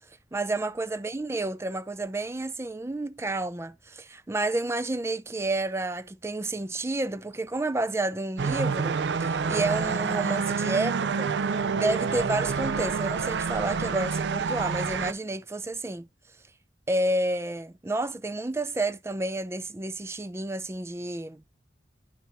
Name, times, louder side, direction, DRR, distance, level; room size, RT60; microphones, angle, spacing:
voice 1, 0.3-11.3 11.7-16.1 16.9-21.4, right 2 dB, 15° right, 0.4 m, -30 dB
sound 1, 8.4-15.1, right 5 dB, 75° right, 0.4 m, -28 dB
10.0 x 5.5 x 2.7 m
head